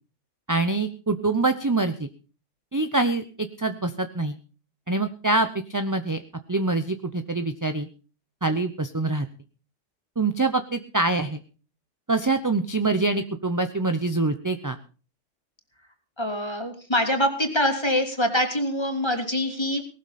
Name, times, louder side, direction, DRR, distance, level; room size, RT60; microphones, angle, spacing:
voice 1, 0.5-2.1 2.7-4.4 4.9-6.2 6.5-7.9 8.4-9.3 10.2-11.4 12.1-14.8, right 3 dB, 20° right, 9 dB, 0.7 m, -25 dB
voice 2, 16.2-19.8, equal, 20° left, 4 dB, 3.0 m, -24 dB
18.5 x 13.0 x 4.2 m, 0.37 s
omnidirectional pair, 1.3 m